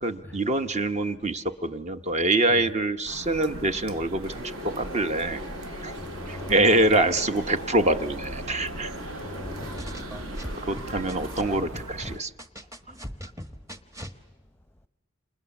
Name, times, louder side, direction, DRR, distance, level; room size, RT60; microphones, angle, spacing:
voice 1, 0.0-5.4 5.8-5.9 6.3-9.0 10.7-12.3, right 2 dB, 35° right, 1.0 m, -25 dB
sound 1, 3.0-12.2, right 1 dB, 80° right, 1.1 m, -41 dB
sound 2, 4.2-11.6, equal, 65° right, 3.9 m, -39 dB
voice 2, 6.0-7.0 9.2-10.0, left 1 dB, 10° left, 0.8 m, -40 dB
sound 3, 9.4-11.4 11.7-14.2, equal, 15° right, 1.3 m, -39 dB
29.5 x 27.5 x 7.2 m
head